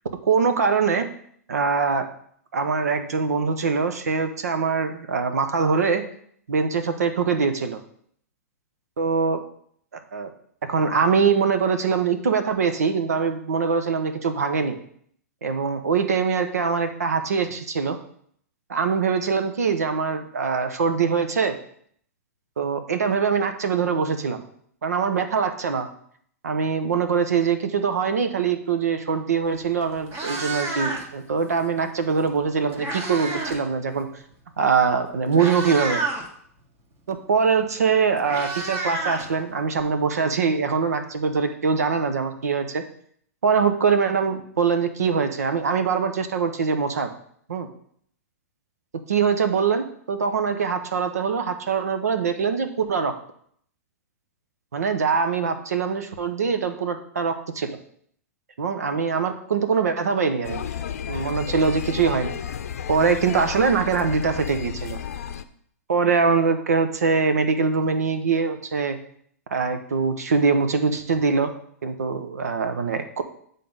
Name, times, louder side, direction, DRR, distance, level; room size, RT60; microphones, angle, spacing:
voice 1, 0.2-1.0 1.5-2.1 2.5-6.0 6.5-7.8 9.0-9.4 10.1-10.3 10.7-14.8 15.4-18.0 18.7-21.5 22.6-24.4 24.8-25.9 26.4-34.1 34.6-36.0 37.1-42.8 43.4-47.1 47.5-47.7 49.1-53.1 54.7-57.8 58.6-60.7 61.1-62.3 62.9-65.0 65.9-69.0 69.5-71.5 71.8-73.2, right 5 dB, 75° right, 8 dB, 1.0 m, -23 dB
Meow, 29.5-29.6 30.0-31.2 32.3-33.6 33.9-34.2 34.9-35.0 35.3-36.3 37.6-37.7 37.9-39.8, right 2 dB, 30° right, 1.8 m, -30 dB
sound 1, 60.4-65.4, left 8 dB, 65° left, 0.6 m, -32 dB
8.6 x 3.9 x 5.4 m, 0.64 s
hypercardioid pair, 110°, 9 cm